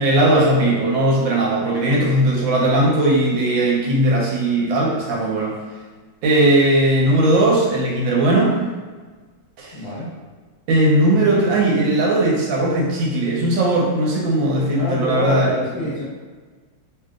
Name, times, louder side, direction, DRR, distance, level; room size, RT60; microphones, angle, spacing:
voice 1, 0.0-5.6 6.2-8.5 9.6-9.7 10.7-15.9, right 1 dB, 85° right, -4 dB, 1.4 m, -18 dB
voice 2, 9.7-10.1 14.7-16.0, left 1 dB, 45° left, -11 dB, 0.7 m, -26 dB
3.0 x 2.8 x 2.3 m, 1.4 s
omnidirectional pair, 2.1 m